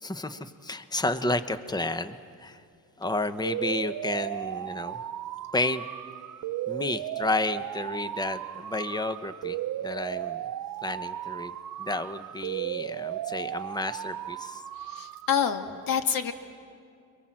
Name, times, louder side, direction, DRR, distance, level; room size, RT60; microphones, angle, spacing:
voice 1, 0.0-2.6 3.0-5.0 5.5-5.8 6.7-9.6 9.8-10.4 10.8-14.6, left 2 dB, 10° left, 10 dB, 1.0 m, -31 dB
sound 1, 3.4-15.4, right 12 dB, 60° right, 0.7 m, -35 dB
voice 2, 14.8-16.3, left 7 dB, 65° left, 6 dB, 1.9 m, -27 dB
30.0 x 23.5 x 7.6 m, 2.3 s
cardioid pair, 95°, 37 cm